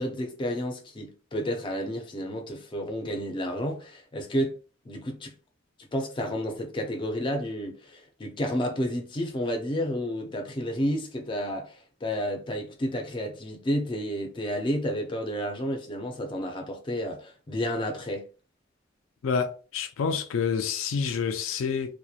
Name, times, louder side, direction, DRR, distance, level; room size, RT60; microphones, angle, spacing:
voice 1, 0.0-4.5 4.9-5.3 5.8-18.3, equal, 25° left, 0.4 m, -31 dB
voice 2, 19.2-22.0, left 6 dB, 85° left, 0.4 m, -28 dB
2.8 x 2.1 x 2.3 m
head